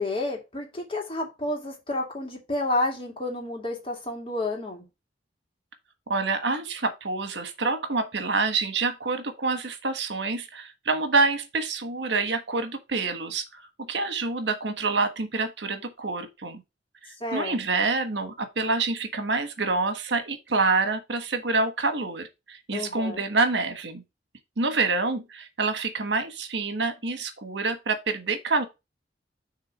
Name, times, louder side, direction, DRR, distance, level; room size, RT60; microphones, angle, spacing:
voice 1, 0.0-4.8 17.2-17.8 22.7-23.2, left 2 dB, 30° left, 2.3 m, -30 dB
voice 2, 6.1-13.6 13.9-16.6 17.3-24.0 24.6-28.6, right 3 dB, 70° right, 1.4 m, -27 dB
6.6 x 3.6 x 6.2 m
head